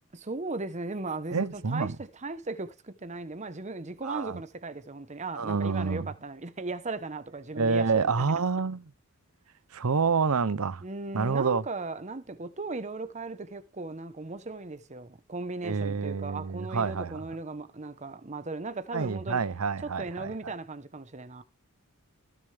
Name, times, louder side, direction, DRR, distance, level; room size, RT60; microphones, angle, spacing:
voice 1, 0.1-8.3 10.8-19.4 19.8-21.4, right 3 dB, 30° right, 1.0 m, -37 dB
voice 2, 1.3-2.0 4.0-4.4 5.3-6.1 7.6-8.8 9.7-10.8 11.1-11.6 15.6-17.2 18.9-20.5, right 5 dB, 70° right, 0.7 m, -28 dB
19.5 x 6.7 x 3.4 m
head